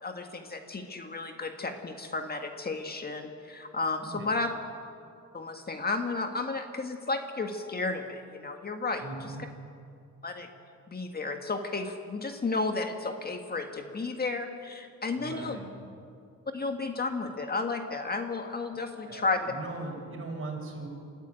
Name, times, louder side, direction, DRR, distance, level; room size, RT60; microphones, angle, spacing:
voice 1, 0.0-4.5 5.3-9.3 10.2-10.5 10.9-15.6 16.5-19.5, left 3 dB, 30° left, 5 dB, 1.8 m, -33 dB
voice 2, 3.9-4.3 9.0-9.4 15.1-15.7 19.0-20.9, right 3 dB, 45° right, 1 dB, 6.1 m, -39 dB
23.5 x 14.0 x 9.2 m, 2.3 s
cardioid pair, 90°, 30 cm